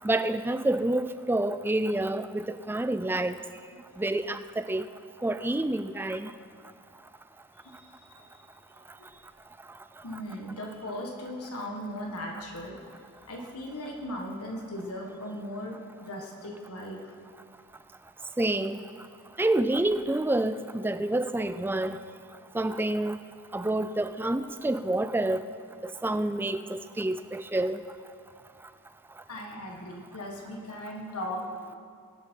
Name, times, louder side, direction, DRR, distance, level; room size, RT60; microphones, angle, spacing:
voice 1, 0.0-3.4 4.0-4.9 5.2-6.3 18.4-18.8 19.4-22.0 22.5-23.2 23.5-25.5 25.8-27.8, right 1 dB, 10° right, 11 dB, 0.3 m, -28 dB
voice 2, 7.6-8.3 8.7-8.9 10.0-12.9 13.2-17.0 29.3-31.8, left 1 dB, 90° left, 0 dB, 1.6 m, -38 dB
21.0 x 8.3 x 4.5 m, 2.2 s
head